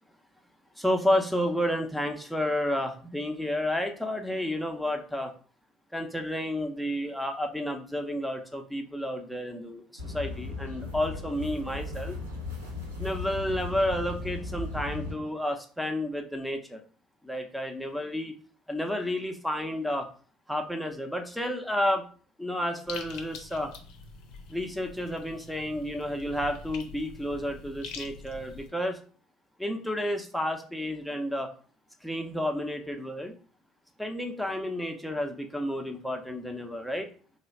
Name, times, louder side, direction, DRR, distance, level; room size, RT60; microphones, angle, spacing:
voice 1, 0.8-5.3 5.9-12.2 13.0-16.8 17.2-18.3 18.7-20.1 20.5-22.1 22.4-23.7 24.5-29.0 29.6-31.5 32.0-33.3 34.0-37.1, left 1 dB, ahead, 4 dB, 0.6 m, -31 dB
sound 1, 10.0-15.1, left 3 dB, 85° right, 0.7 m, -36 dB
sound 2, 22.9-28.7, left 5 dB, 60° left, 0.5 m, -44 dB
3.1 x 2.0 x 4.1 m, 0.41 s
figure-of-eight pair, 60°, 0 cm